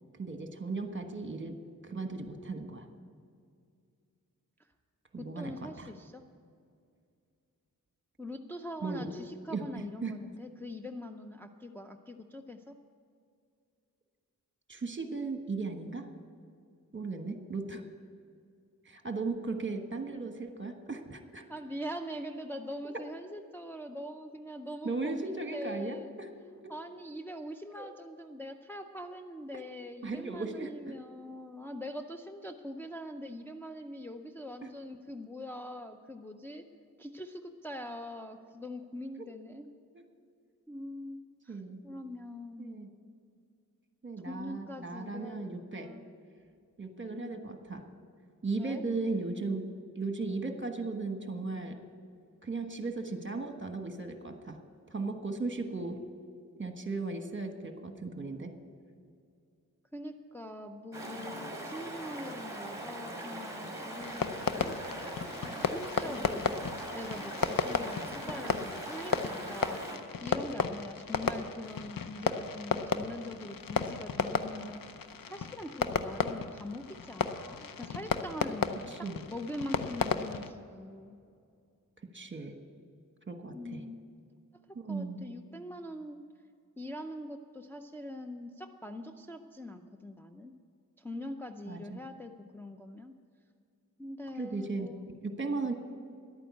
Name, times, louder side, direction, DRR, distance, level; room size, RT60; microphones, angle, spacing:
voice 1, 0.2-1.6 1.8-2.9 5.1-5.9 8.8-9.1 9.5-10.2 14.7-16.1 16.9-17.8 18.8-21.4 24.8-26.3 26.6-26.7 27.7-27.8 30.0-31.0 34.6-34.7 39.2-39.3 39.9-40.0 41.5-41.8 42.6-42.9 44.0-45.9 46.8-47.9 48.4-51.8 52.4-54.6 54.9-56.0 56.6-58.5 78.9-79.2 82.1-82.6 83.3-83.8 84.7-85.3 91.7-92.0 94.4-94.9 95.2-95.7, right 3 dB, 35° right, 6 dB, 1.3 m, -36 dB
voice 2, 5.2-6.2 8.2-12.8 21.5-26.1 26.7-36.6 37.0-39.7 40.7-42.8 44.2-46.1 47.1-47.5 48.6-48.8 59.9-65.0 65.4-69.8 70.2-81.2 83.5-84.0 84.9-86.2 86.8-90.5 91.0-93.1 94.0-95.1, left 1 dB, 5° left, 3 dB, 0.6 m, -43 dB
Stream, 60.9-70.0, right 1 dB, 10° right, 2.7 m, -41 dB
Fireworks, 64.0-80.5, left 6 dB, 75° left, 0.7 m, -34 dB
11.5 x 9.0 x 8.3 m, 2.3 s
wide cardioid pair, 60°, 34 cm